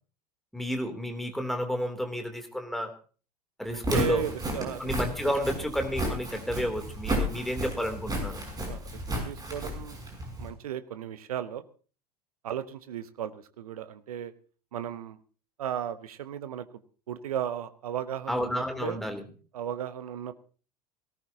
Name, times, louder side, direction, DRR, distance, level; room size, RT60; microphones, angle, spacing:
voice 1, 0.5-2.9 3.6-4.2 4.8-8.4 18.3-19.2, equal, ahead, 4 dB, 3.0 m, -31 dB
Walk footsteps, 3.7-10.5, right 1 dB, 20° right, 6.3 m, -33 dB
voice 2, 3.7-4.8 5.2-5.3 8.7-10.0 10.4-11.6 12.4-14.3 14.7-15.2 15.6-16.7 17.1-19.0 19.5-20.4, right 9 dB, 65° right, 13 dB, 1.1 m, -35 dB
18.5 x 18.0 x 2.8 m, 0.39 s
figure-of-eight pair, 80°, 20 cm